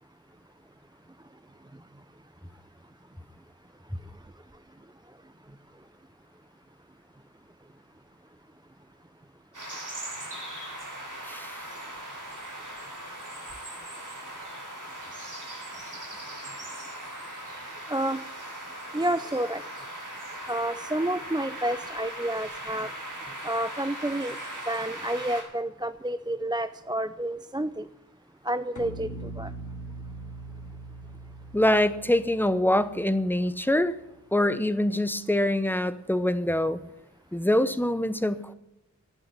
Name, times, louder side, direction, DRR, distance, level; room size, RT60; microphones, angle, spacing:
sound 1, 9.5-25.4, right 1 dB, 85° right, 3.8 m, -39 dB
voice 1, 11.2-11.6 31.5-33.9 34.3-36.8 37.3-38.5, left 1 dB, 5° left, 13 dB, 0.8 m, -24 dB
voice 2, 17.9-18.2 18.9-19.6 20.5-22.9 23.4-24.4 24.7-27.9 28.4-29.5, right 1 dB, 15° right, 12 dB, 0.4 m, -29 dB
sound 2, 28.8-34.0, right 2 dB, 75° left, 1.6 m, -42 dB
11.0 x 9.2 x 8.8 m, 0.91 s
wide cardioid pair, 50°, 30 cm